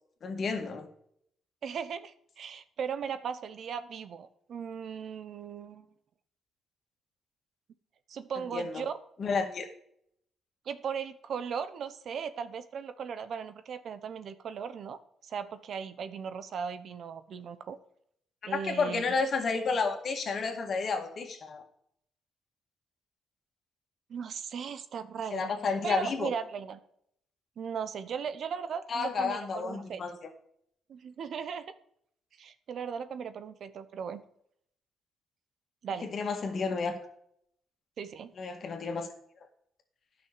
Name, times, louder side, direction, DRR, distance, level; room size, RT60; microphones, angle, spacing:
voice 1, 0.2-0.9 8.4-8.8 9.2-9.7 18.4-21.6 25.3-26.3 28.9-30.1 36.0-37.0 38.4-39.1, left 4 dB, 55° left, 5 dB, 2.0 m, -31 dB
voice 2, 1.6-5.9 8.1-8.9 10.7-17.8 18.4-19.0 24.1-25.5 25.8-26.8 27.6-30.0 30.9-31.6 32.4-34.2 35.8-36.1 38.0-38.3, right 7 dB, 60° right, 12 dB, 0.9 m, -37 dB
10.5 x 6.1 x 6.9 m, 0.69 s
cardioid pair, 75°, 0 cm